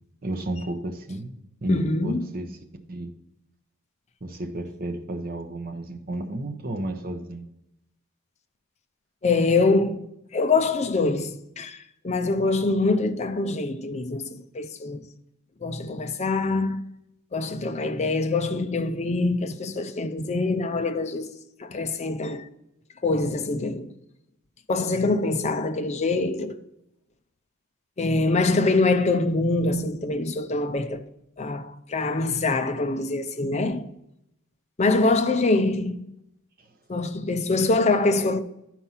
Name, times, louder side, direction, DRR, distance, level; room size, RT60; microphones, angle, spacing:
voice 1, 0.2-1.3 1.6-2.6 2.9-3.1 4.2-7.5, right 1 dB, 40° right, 0.9 m, -32 dB
voice 2, 1.7-2.3 9.2-10.1 10.3-15.1 15.6-16.8 17.3-21.3 21.6-22.5 23.0-23.9 24.7-26.6 28.0-31.0 31.4-33.9 34.8-36.0 36.9-38.4, left 3 dB, 30° left, 0.5 m, -24 dB
11.0 x 4.5 x 5.7 m
head